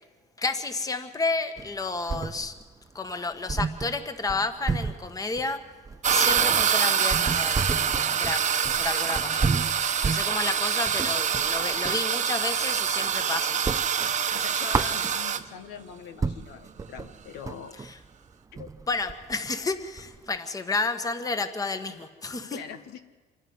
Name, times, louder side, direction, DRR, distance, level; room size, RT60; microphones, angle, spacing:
voice 1, 0.4-2.5 2.9-5.6 6.1-9.5 10.0-13.5 18.9-22.6, left 3 dB, 20° left, 8 dB, 1.4 m, -31 dB
sound 1, 1.6-2.7 3.0-3.1 3.5-12.1 12.5-13.2 13.5-15.5 15.9-16.0 16.2-20.4, right 4 dB, 20° right, 0.5 m, -32 dB
sound 2, 6.0-15.4, right 8 dB, 45° right, 1.0 m, -25 dB
voice 2, 14.3-17.8 18.5-18.7 22.5-23.0, left 8 dB, 85° left, 8 dB, 1.3 m, -41 dB
26.5 x 11.0 x 9.5 m, 1.4 s
cardioid pair, 110°, 17 cm